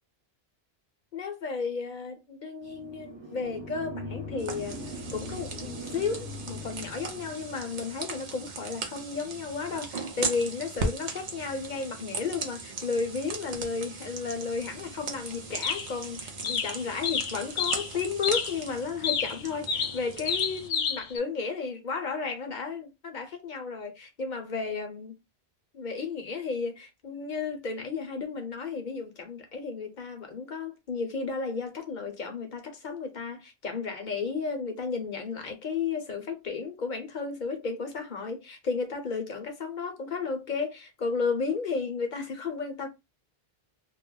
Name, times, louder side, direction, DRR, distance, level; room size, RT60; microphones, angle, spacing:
voice 1, 1.1-4.8 5.1-25.1 25.7-42.9, left 5 dB, 55° left, 0.8 m, -33 dB
sound 1, 2.6-7.6, left 1 dB, 30° right, 1.0 m, -40 dB
sound 2, 4.4-20.7, right 3 dB, 50° right, 0.7 m, -38 dB
sound 3, 14.6-14.7 15.6-16.1 16.4-17.9 18.2-18.6 19.0-21.2, left 6 dB, 85° left, 0.9 m, -30 dB
2.3 x 2.1 x 3.7 m
omnidirectional pair, 1.0 m